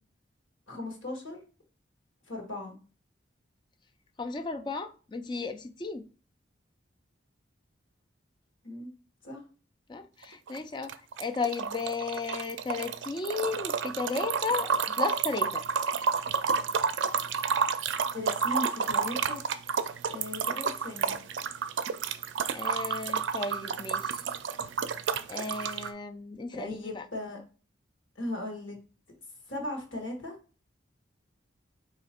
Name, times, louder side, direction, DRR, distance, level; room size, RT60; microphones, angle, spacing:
voice 1, 0.7-1.4 2.3-2.8 8.6-8.9 9.2-9.4 18.1-19.4 20.1-21.2 26.6-27.4 28.1-28.8 29.5-30.3, left 1 dB, 85° left, 1.5 m, -37 dB
voice 2, 4.2-6.1 9.9-10.9 11.2-15.6 22.5-24.2 25.3-27.0, left 4 dB, 25° left, 0.3 m, -34 dB
sound 1, 10.2-10.6 10.8-25.9, right 6 dB, 70° right, 0.4 m, -30 dB
3.9 x 2.9 x 4.2 m
head